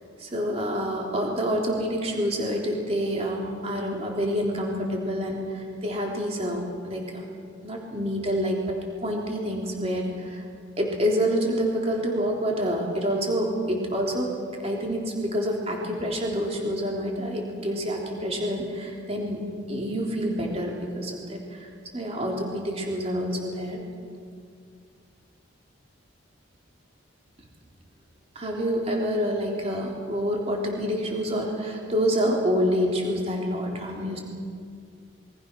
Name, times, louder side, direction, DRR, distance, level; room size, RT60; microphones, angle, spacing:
voice 1, 0.2-7.2 7.6-8.6 9.0-10.4 10.8-14.3 14.6-21.7 21.9-23.8 28.4-34.2, equal, 30° right, -1 dB, 3.6 m, -27 dB
27.5 x 23.5 x 6.3 m, 2.2 s
head